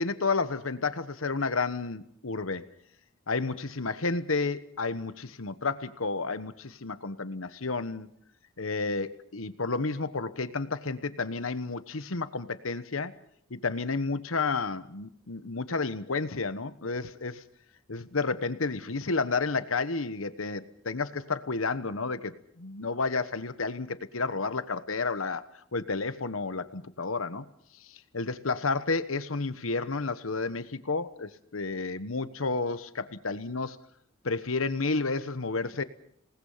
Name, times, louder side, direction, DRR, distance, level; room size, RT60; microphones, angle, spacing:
voice 1, 0.0-2.7 3.3-8.1 8.6-13.1 13.5-17.4 17.9-27.5 27.9-33.8 34.2-35.8, left 4 dB, 85° left, 12 dB, 1.2 m, -31 dB
27.5 x 19.0 x 5.7 m, 0.67 s
head